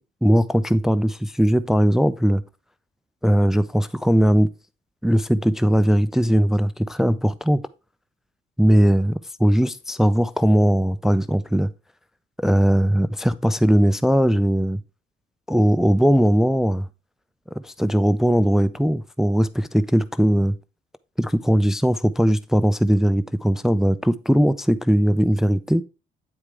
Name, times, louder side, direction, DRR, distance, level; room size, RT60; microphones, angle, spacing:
voice 1, 0.2-2.4 3.2-4.5 5.0-7.6 8.6-11.7 12.4-14.8 15.5-16.9 17.5-20.5 21.2-25.8, equal, ahead, 0.4 m, -19 dB
8.7 x 4.8 x 3.4 m
cardioid pair, 90°, 20 cm